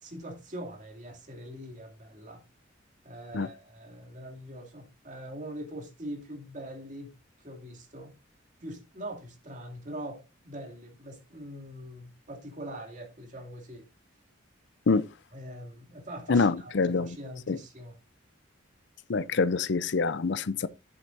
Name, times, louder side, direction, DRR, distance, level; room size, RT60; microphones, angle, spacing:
voice 1, 0.0-2.4 3.0-7.1 7.4-8.1 8.6-13.8 15.3-18.0, right 1 dB, 40° right, 2.6 m, -42 dB
voice 2, 16.3-17.2 17.5-17.6 19.1-20.7, left 4 dB, 60° left, 0.5 m, -25 dB
11.0 x 8.0 x 2.6 m
head